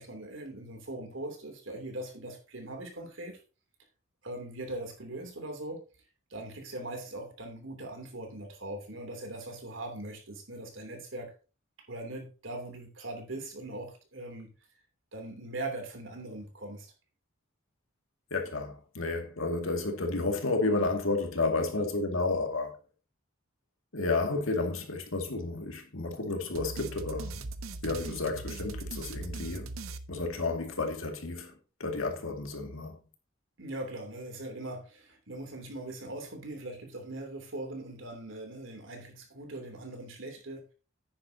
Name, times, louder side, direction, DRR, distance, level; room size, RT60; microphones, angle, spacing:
voice 1, 0.0-3.4 4.2-5.8 6.3-11.3 11.9-14.5 15.1-16.9 33.6-40.6, right 2 dB, 70° right, 2.9 m, -40 dB
voice 2, 18.3-22.7 23.9-27.5 27.8-29.7 30.1-31.5 31.8-33.0, left 3 dB, 80° left, 2.1 m, -31 dB
sound 1, 26.5-30.8, right 3 dB, 90° right, 0.8 m, -40 dB
9.9 x 9.8 x 2.8 m
head